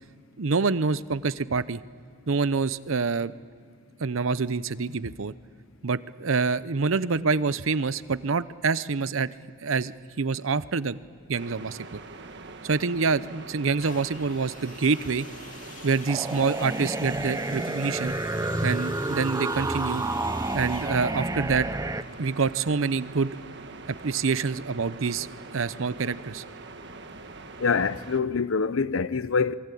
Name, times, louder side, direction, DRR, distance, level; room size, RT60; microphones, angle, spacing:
voice 1, 0.4-1.8 2.3-3.3 4.0-5.3 5.8-9.3 9.6-11.0 11.3-12.0 12.6-15.3 15.8-18.1 18.6-20.0 20.5-21.7 22.2-23.4 24.0-25.3 25.5-26.4, right 4 dB, 75° right, 0.7 m, -26 dB
sound 1, 11.3-28.2, right 3 dB, 60° right, 1.6 m, -43 dB
sound 2, 13.8-23.5 24.2-24.3, left 4 dB, 40° left, 2.5 m, -48 dB
sound 3, 16.1-22.0, right 2 dB, 15° right, 0.6 m, -30 dB
voice 2, 27.6-29.5, left 5 dB, 75° left, 0.7 m, -25 dB
27.0 x 23.5 x 8.4 m
head